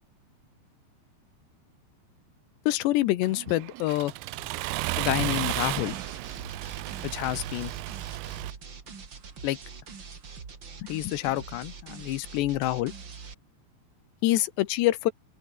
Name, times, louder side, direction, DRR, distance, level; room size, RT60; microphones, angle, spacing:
voice 1, 2.7-4.1 5.0-6.0 7.0-7.7 9.4-9.6 10.8-12.9 14.2-15.1, left 16 dB, 80° left, 3.2 m, -27 dB
Accelerating revving vroom, 3.2-8.5, right 21 dB, 90° right, 2.9 m, -33 dB
sound 1, 5.4-13.3, right 5 dB, 30° right, 2.7 m, -43 dB
open air
omnidirectional pair, 5.0 m